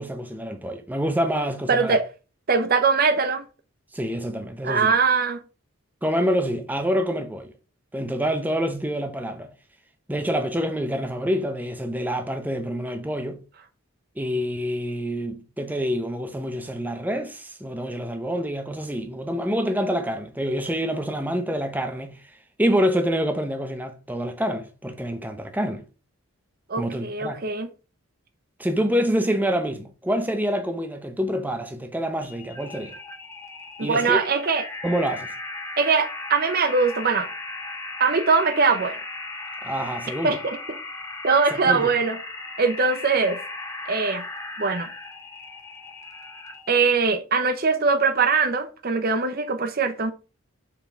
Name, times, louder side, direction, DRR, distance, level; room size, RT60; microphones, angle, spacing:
voice 1, 0.0-2.0 3.9-4.9 6.0-7.5 7.9-9.5 10.1-13.4 14.2-22.3 22.6-25.8 26.8-27.4 28.6-33.0 33.8-34.3 34.8-35.3 39.6-40.4 41.5-41.9, equal, 10° right, 0.7 m, -26 dB
voice 2, 1.7-2.1 2.5-3.4 4.6-5.4 26.7-27.7 33.8-34.6 35.8-37.3 38.0-39.0 40.2-40.6 41.2-42.2 42.6-43.4 43.9-44.2 44.6-44.9 46.7-50.1, right 4 dB, 45° right, 0.6 m, -21 dB
sound 1, 32.2-46.8, left 2 dB, 15° left, 1.2 m, -37 dB
5.7 x 4.5 x 4.5 m
head